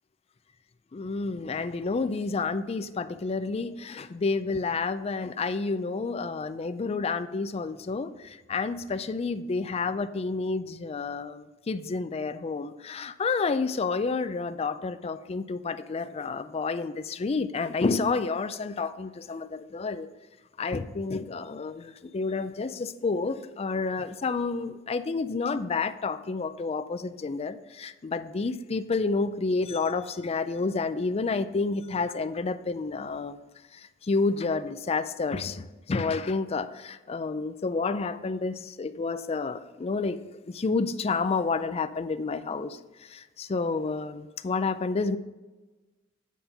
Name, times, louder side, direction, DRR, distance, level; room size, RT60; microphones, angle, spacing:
voice 1, 0.9-20.1 20.6-33.4 34.0-40.2 40.5-42.8 43.1-45.2, left 4 dB, 30° left, 12 dB, 0.4 m, -30 dB
9.1 x 4.3 x 5.2 m, 1.2 s
head